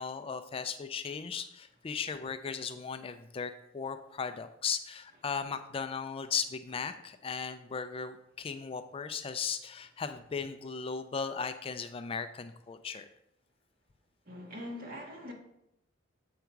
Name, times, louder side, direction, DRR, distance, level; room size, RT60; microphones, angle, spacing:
voice 1, 0.0-13.1, left 6 dB, 30° left, 9 dB, 0.4 m, -37 dB
voice 2, 14.3-15.3, left 1 dB, 50° right, 0 dB, 1.7 m, -42 dB
8.1 x 4.9 x 4.6 m, 0.84 s
head